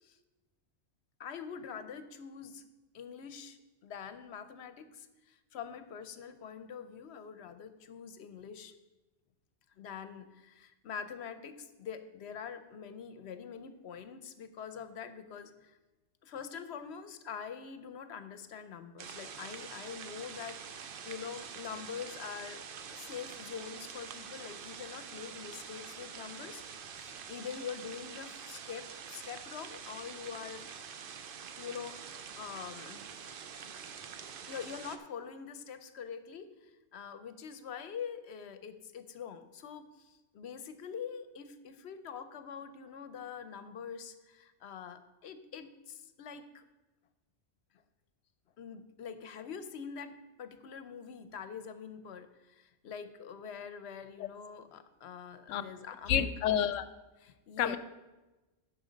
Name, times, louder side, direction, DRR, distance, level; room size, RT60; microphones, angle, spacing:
voice 1, 1.2-2.6 2.9-8.7 9.8-15.8 16.2-22.6 22.9-30.7 31.5-33.1 34.5-46.6 48.6-56.8 57.2-57.8, left 7 dB, 65° left, 11 dB, 0.9 m, -45 dB
sound 1, 19.0-35.0, right 7 dB, 55° right, 0.7 m, -46 dB
voice 2, 56.1-56.8 57.6-57.8, left 9 dB, 90° left, 13 dB, 0.9 m, -29 dB
10.5 x 6.2 x 5.1 m, 1.1 s
omnidirectional pair, 1.3 m